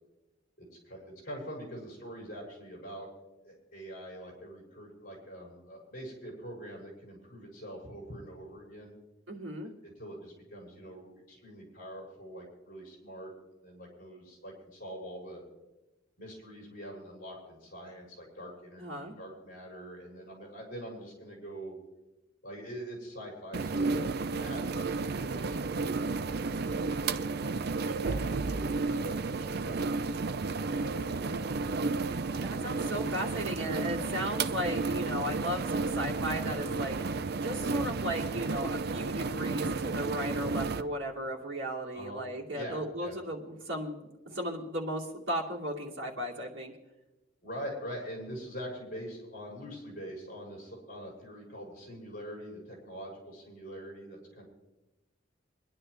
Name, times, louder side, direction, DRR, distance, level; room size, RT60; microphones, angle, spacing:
voice 1, 0.6-3.1 3.4-8.9 9.8-13.3 13.6-15.4 16.2-21.8 22.4-31.4 41.9-42.2 42.5-43.1 47.4-54.4, equal, 50° left, -3 dB, 6.3 m, -44 dB
voice 2, 9.3-9.7 18.8-19.1 32.4-37.0 37.4-46.7, equal, 85° right, -4 dB, 2.6 m, -36 dB
sound 1, 23.5-40.8, right 3 dB, 55° right, 0.6 m, -32 dB
24.0 x 11.0 x 3.3 m, 1.1 s
head